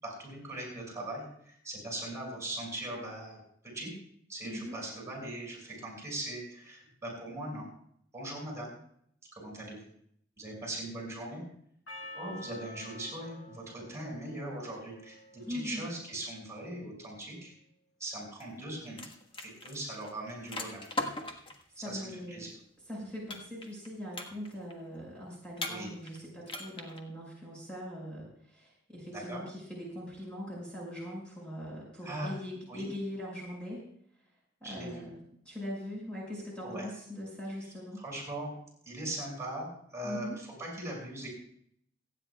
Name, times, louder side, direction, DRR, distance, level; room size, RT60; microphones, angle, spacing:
voice 1, 0.0-3.4 3.7-3.9 4.3-7.6 8.1-8.8 9.3-9.9 10.4-11.4 12.1-17.5 18.0-19.0 19.4-20.9 21.8-22.0 22.3-22.5 25.7-25.9 29.1-29.4 32.0-32.3 32.7-32.8 34.6-35.1 36.6-36.8 38.0-38.5 38.8-41.3, right 1 dB, 15° right, -2 dB, 6.2 m, -40 dB
voice 2, 4.4-4.8 15.4-15.9 21.8-22.5 22.9-33.8 34.6-35.2 35.5-38.0 40.0-40.4, equal, 5° left, -5 dB, 5.4 m, -41 dB
Percussion, 11.9-16.3, left 1 dB, 85° left, 1.9 m, -50 dB
sound 1, 18.4-18.6 18.9-21.6 23.3-23.9 24.1-24.7 25.6-26.2 26.5-27.0, left 2 dB, 25° left, 1.5 m, -38 dB
28.5 x 9.9 x 2.4 m, 0.66 s
head